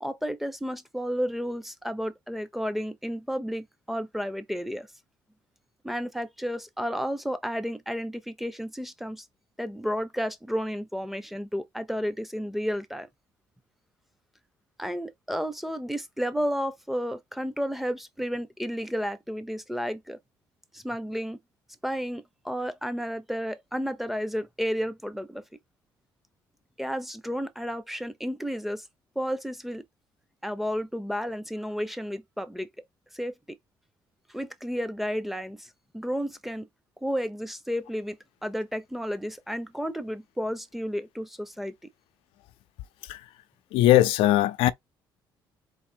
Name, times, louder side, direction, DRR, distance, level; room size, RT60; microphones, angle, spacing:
voice 1, 0.0-4.9 5.8-9.2 9.6-13.1 14.8-20.2 20.7-21.4 21.8-25.4 26.8-28.8 29.2-29.8 30.4-32.7 33.1-33.6 34.3-36.7 37.0-41.9, equal, ahead, 0.8 m, -32 dB
voice 2, 43.7-44.7, left 14 dB, 90° left, 0.6 m, -20 dB
4.0 x 2.8 x 4.6 m
cardioid pair, 90°, 9 cm